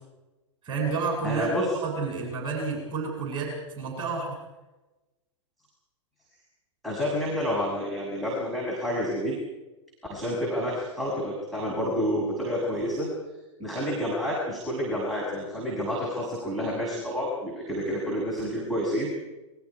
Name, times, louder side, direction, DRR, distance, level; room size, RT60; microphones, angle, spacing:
voice 1, 0.6-1.5 1.8-4.4, right 4 dB, 30° right, 0 dB, 7.8 m, -30 dB
voice 2, 1.2-1.7 6.8-9.4 10.1-13.1 13.6-19.1, equal, ahead, -5 dB, 6.6 m, -29 dB
28.0 x 23.0 x 4.9 m, 1.1 s
figure-of-eight pair, 105°, 16 cm